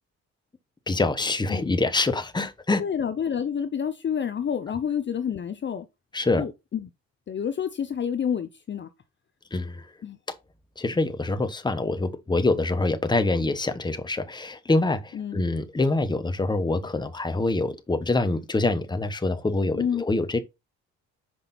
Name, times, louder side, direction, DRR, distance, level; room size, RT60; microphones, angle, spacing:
voice 1, 0.9-2.8 6.1-6.4 9.5-9.9 10.8-20.4, left 2 dB, 15° left, 1.0 m, -25 dB
voice 2, 2.8-5.8 6.4-6.9 7.3-8.9 10.0-10.2 15.1-15.4 19.7-20.0, left 8 dB, 40° left, 0.7 m, -29 dB
6.2 x 5.0 x 4.1 m
cardioid pair, 90°, 30 cm